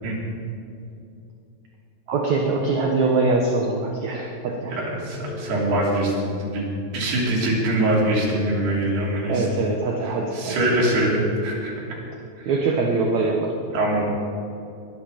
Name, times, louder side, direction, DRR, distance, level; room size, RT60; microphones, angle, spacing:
voice 1, 2.1-4.8 9.3-10.6 12.5-13.6, right 3 dB, 65° right, 1 dB, 2.0 m, -23 dB
Telephone, 4.3-5.3 7.2-8.3 10.2-11.2, equal, 55° left, 3.9 m, -42 dB
voice 2, 4.7-6.7 6.9-9.5 10.3-11.7 12.4-12.5 13.7-14.1, right 1 dB, 90° right, -3 dB, 5.1 m, -23 dB
22.0 x 11.0 x 5.2 m, 2.6 s
omnidirectional pair, 4.5 m